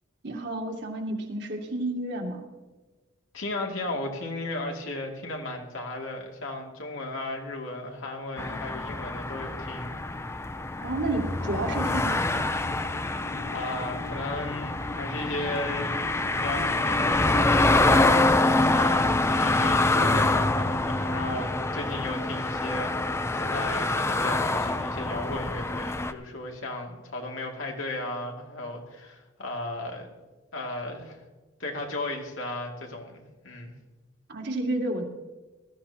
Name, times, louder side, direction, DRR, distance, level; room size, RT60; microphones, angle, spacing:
voice 1, 0.2-2.4 10.8-12.5 34.3-35.0, right 2 dB, 60° right, 1 dB, 2.0 m, -31 dB
voice 2, 3.3-9.9 13.0-15.9 16.3-30.1 30.5-31.2 31.6-33.7, left 2 dB, 85° left, 1 dB, 2.4 m, -35 dB
sound 1, 8.4-26.1, left 2 dB, 15° left, 0.5 m, -26 dB
19.5 x 13.5 x 2.9 m, 1.2 s
head